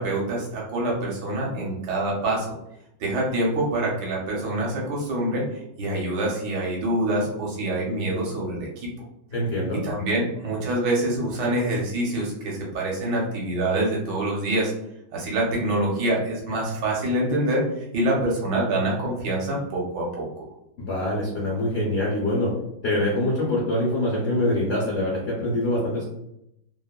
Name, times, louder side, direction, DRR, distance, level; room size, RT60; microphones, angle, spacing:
voice 1, 0.0-2.5 3.0-5.4 5.8-8.9 9.8-14.7 15.1-17.6 17.9-20.4, right 1 dB, 70° right, -3 dB, 1.2 m, -25 dB
voice 2, 9.3-9.8 20.8-22.5 22.8-26.1, left 1 dB, 80° left, -5 dB, 0.5 m, -24 dB
3.2 x 2.1 x 2.2 m, 0.79 s
omnidirectional pair, 2.1 m